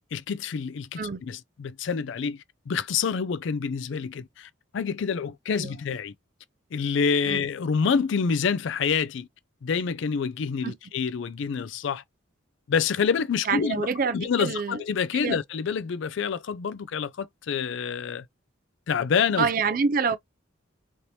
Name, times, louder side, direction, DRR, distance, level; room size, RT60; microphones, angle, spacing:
voice 1, 0.1-6.1 6.7-9.3 9.6-12.0 12.7-13.9 14.1-18.3 18.9-19.5, left 6 dB, 65° left, 0.4 m, -27 dB
voice 2, 13.4-14.8 15.1-15.4 19.4-20.2, right 5 dB, 45° right, 0.4 m, -26 dB
3.1 x 2.9 x 2.7 m
head